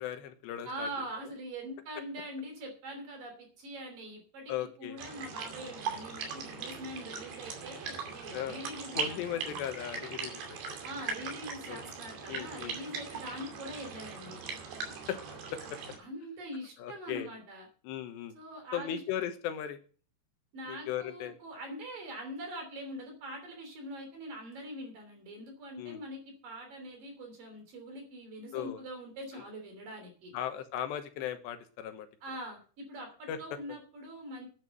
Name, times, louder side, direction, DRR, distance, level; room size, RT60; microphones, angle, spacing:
voice 1, 0.0-0.9 4.5-5.0 8.3-8.6 8.9-10.8 11.7-11.8 12.3-12.8 15.1-15.2 15.5-15.6 16.8-17.3 17.8-18.3 18.7-19.8 20.7-21.3 25.8-26.0 28.5-28.8 30.3-32.1 33.3-33.4, left 10 dB, 80° left, 8 dB, 3.4 m, -37 dB
voice 2, 0.6-4.5 4.8-9.6 10.8-14.4 16.0-17.7 18.3-19.0 20.5-30.3 32.2-34.5, right 1 dB, 55° right, 4 dB, 4.6 m, -43 dB
sound 1, 5.0-16.0, right 5 dB, 90° right, 4.9 m, -40 dB
10.5 x 9.3 x 6.6 m, 0.41 s
omnidirectional pair, 5.0 m